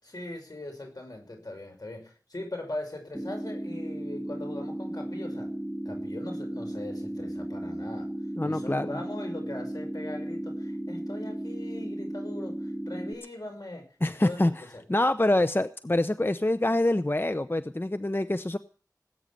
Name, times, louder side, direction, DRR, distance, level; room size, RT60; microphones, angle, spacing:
voice 1, 0.0-5.5 5.8-8.1 8.4-14.8, left 1 dB, 80° left, 3 dB, 5.8 m, -40 dB
sound 1, 3.1-13.1, right 1 dB, 10° right, 2.8 m, -35 dB
voice 2, 8.4-8.9 14.0-14.5 14.9-18.6, left 1 dB, 35° left, 10 dB, 0.8 m, -25 dB
19.0 x 9.0 x 8.4 m, 0.42 s
wide cardioid pair, 40°, 7 cm